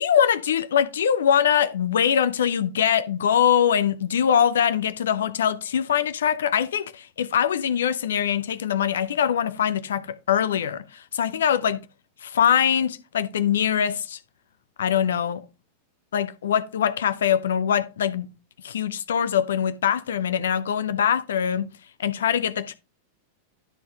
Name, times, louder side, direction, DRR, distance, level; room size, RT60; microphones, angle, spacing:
voice 1, 0.0-11.8 12.2-14.2 14.8-15.4 16.1-18.3 18.6-21.7 22.0-22.8, left 8 dB, 65° left, 0.8 m, -23 dB
12.0 x 4.3 x 3.6 m
figure-of-eight pair, 90°, 0 cm